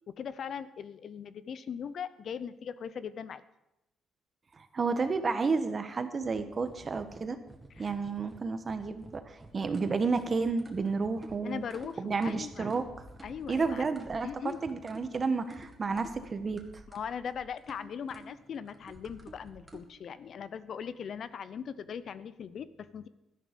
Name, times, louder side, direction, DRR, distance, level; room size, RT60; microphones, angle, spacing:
voice 1, 0.1-3.4 7.8-7.9 11.4-12.7 13.2-13.9 14.2-14.6 16.9-23.1, left 7 dB, 60° left, 15 dB, 0.6 m, -40 dB
voice 2, 4.6-7.4 7.8-11.6 12.0-12.8 13.5-16.6, right 4 dB, 35° right, 9 dB, 1.2 m, -31 dB
sound 1, 6.2-19.8, right 2 dB, 20° right, 1.9 m, -51 dB
12.5 x 10.5 x 5.2 m, 0.90 s
cardioid pair, 90°, 0 cm